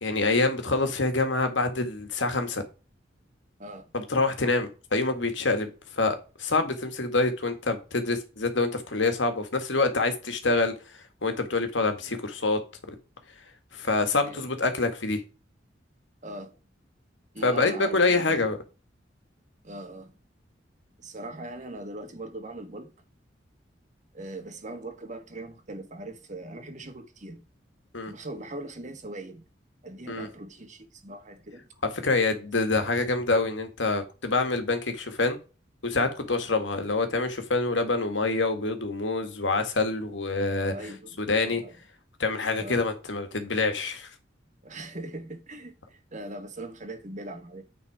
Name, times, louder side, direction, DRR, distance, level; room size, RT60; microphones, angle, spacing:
voice 1, 0.0-2.6 3.9-12.6 12.9-13.0 13.7-15.2 17.4-18.6 27.9-28.1 30.1-30.3 32.0-35.4 35.8-40.7 41.2-41.6 42.2-44.1, left 3 dB, 90° left, 1.9 m, -26 dB
voice 2, 14.2-14.5 16.2-16.6 17.3-18.4 19.6-20.2 21.0-22.9 24.1-27.4 28.1-29.5 29.8-31.7 36.5-36.6 40.6-41.7 42.6-42.8 44.6-47.6, right 1 dB, 40° right, 1.6 m, -40 dB
9.6 x 4.2 x 4.8 m
head